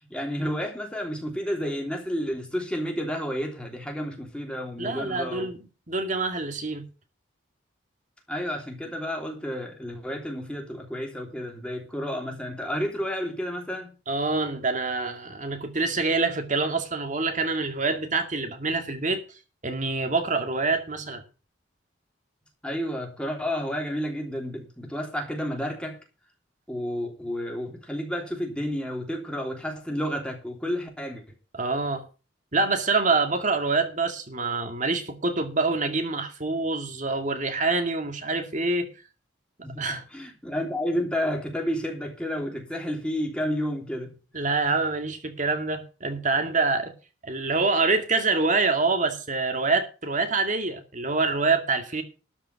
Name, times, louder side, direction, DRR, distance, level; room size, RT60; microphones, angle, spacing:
voice 1, 0.1-5.5 8.3-13.9 22.6-26.0 26.7-31.2 39.6-44.2, equal, 5° left, 3.2 m, -31 dB
voice 2, 4.8-5.6 5.9-6.8 14.1-19.2 19.6-21.2 31.5-32.1 32.5-38.9 39.8-40.0 44.3-46.9 47.2-52.0, right 3 dB, 40° right, 2.2 m, -26 dB
13.0 x 5.8 x 8.1 m
head